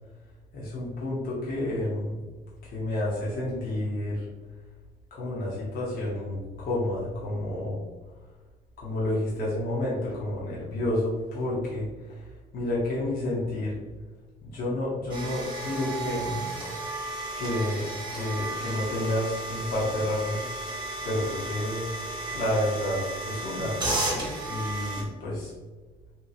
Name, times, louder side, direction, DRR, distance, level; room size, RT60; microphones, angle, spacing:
voice 1, 0.5-2.1 2.6-4.3 5.1-7.8 8.8-12.3 12.5-13.8 14.4-16.4 17.4-20.4 21.0-21.9 22.3-23.8 24.5-25.5, left 1 dB, 60° left, -6 dB, 0.9 m, -30 dB
sound 1, 15.1-25.0, right 2 dB, 25° right, 1.0 m, -33 dB
2.9 x 2.8 x 2.7 m, 1.3 s
cardioid pair, 110°, 17 cm